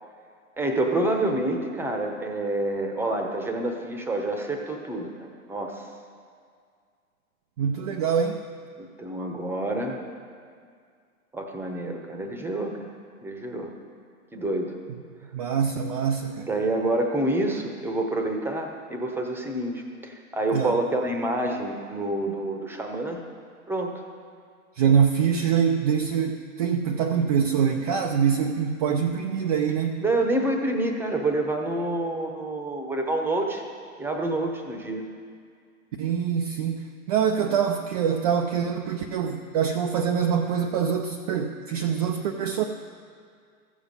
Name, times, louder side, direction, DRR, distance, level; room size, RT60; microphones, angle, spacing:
voice 1, 0.6-5.9 8.8-10.0 11.3-12.9 13.2-13.7 14.3-14.7 16.5-23.2 23.7-23.9 30.0-33.6 34.0-35.0, right 2 dB, 5° right, 3 dB, 0.8 m, -28 dB
voice 2, 7.6-8.4 15.3-16.5 20.5-20.8 24.8-30.0 36.0-42.6, right 7 dB, 30° right, 3 dB, 0.4 m, -24 dB
14.5 x 7.2 x 5.4 m, 2.1 s
hypercardioid pair, 120°, 44 cm